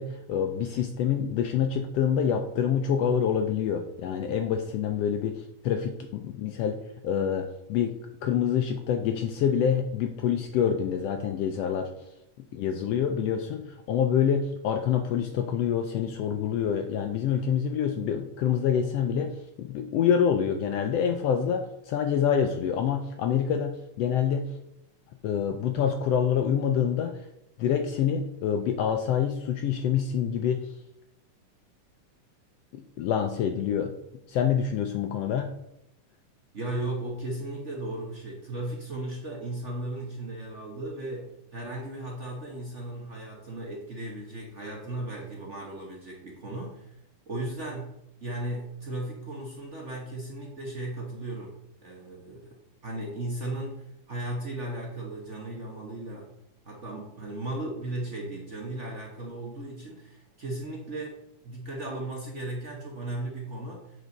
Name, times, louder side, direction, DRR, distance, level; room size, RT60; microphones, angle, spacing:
voice 1, 0.0-6.8 7.0-7.9 8.2-11.9 12.5-19.3 19.6-24.5 25.2-27.1 27.6-30.7 33.0-33.9 34.3-35.5, left 8 dB, 85° left, 6 dB, 1.4 m, -26 dB
voice 2, 36.5-47.0 47.3-47.9 48.2-51.5 51.8-52.6 52.8-56.3 56.6-61.1 61.4-64.0, right 1 dB, 65° right, -1 dB, 0.7 m, -36 dB
8.3 x 6.4 x 4.0 m, 0.81 s
omnidirectional pair, 3.5 m